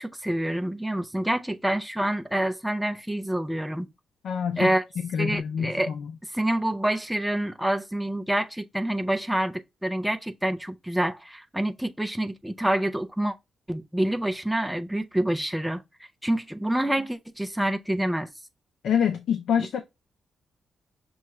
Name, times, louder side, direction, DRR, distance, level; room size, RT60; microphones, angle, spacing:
voice 1, 0.0-3.9 4.6-4.8 5.2-5.9 6.3-13.3 13.7-15.8 16.2-18.3 19.6-19.7, right 1 dB, 5° right, 0.4 m, -27 dB
voice 2, 4.2-4.7 5.0-6.1 18.8-19.8, left 8 dB, 75° left, 0.5 m, -26 dB
5.9 x 2.3 x 3.1 m
wide cardioid pair, 150°, 0 cm